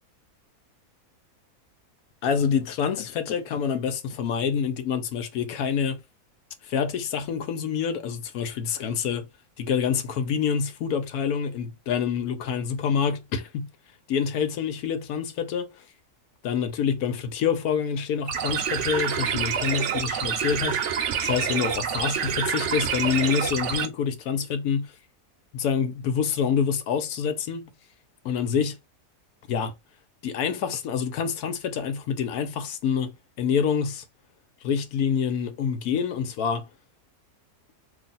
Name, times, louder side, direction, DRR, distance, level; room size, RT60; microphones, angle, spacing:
voice 1, 2.2-6.0 6.6-9.3 9.6-13.7 14.1-15.8 16.4-24.9 25.5-27.7 28.2-28.8 29.5-29.7 30.2-34.0 34.6-36.7, left 7 dB, 75° left, 1.1 m, -27 dB
sound 1, 18.3-23.9, right 8 dB, 65° right, 0.8 m, -27 dB
3.1 x 2.4 x 3.9 m
omnidirectional pair, 1.6 m